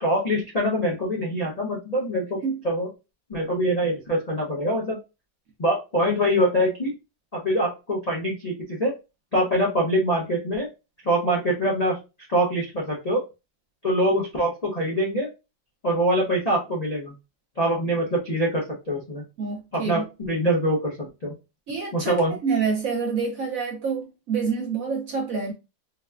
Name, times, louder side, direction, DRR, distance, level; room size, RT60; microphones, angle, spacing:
voice 1, 0.0-2.4 2.6-2.9 3.3-5.0 5.6-6.9 7.3-8.9 9.3-10.7 11.0-12.0 12.3-13.2 13.8-15.3 15.8-17.1 17.6-19.2 19.7-21.3 21.9-22.3, equal, 80° left, 0.3 m, -24 dB
voice 2, 19.4-20.0 21.7-25.5, right 5 dB, 65° right, 0.9 m, -27 dB
4.0 x 2.2 x 2.3 m
omnidirectional pair, 2.1 m